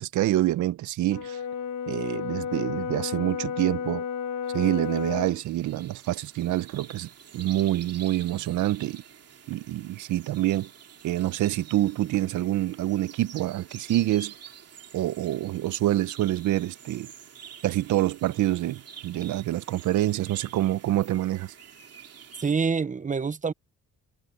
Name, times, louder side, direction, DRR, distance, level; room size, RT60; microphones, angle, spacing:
voice 1, 0.0-1.4 1.9-4.0 4.5-9.0 9.5-10.7 11.0-14.3 14.9-17.1 17.6-21.5, right 14 dB, 80° right, 0.8 m, -26 dB
Brass instrument, 1.1-5.4, left 7 dB, 70° left, 1.7 m, -32 dB
sound 1, 4.5-22.5, right 7 dB, 55° right, 2.8 m, -48 dB
voice 2, 22.4-23.5, right 5 dB, 25° right, 0.8 m, -26 dB
cardioid pair, 90°, 30 cm